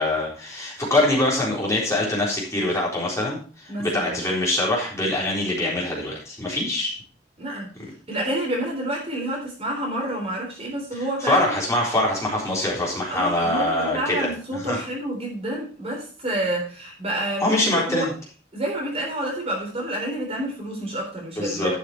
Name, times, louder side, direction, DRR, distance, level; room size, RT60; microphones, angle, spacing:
voice 1, 0.0-6.9 7.8-7.9 11.2-14.8 17.4-18.1 21.4-21.8, left 1 dB, 15° left, -4 dB, 3.9 m, -24 dB
voice 2, 3.7-4.2 7.4-7.7 8.1-11.5 13.1-18.1 18.5-21.8, right 1 dB, 35° right, -1 dB, 3.7 m, -29 dB
12.0 x 6.6 x 4.3 m, 0.40 s
head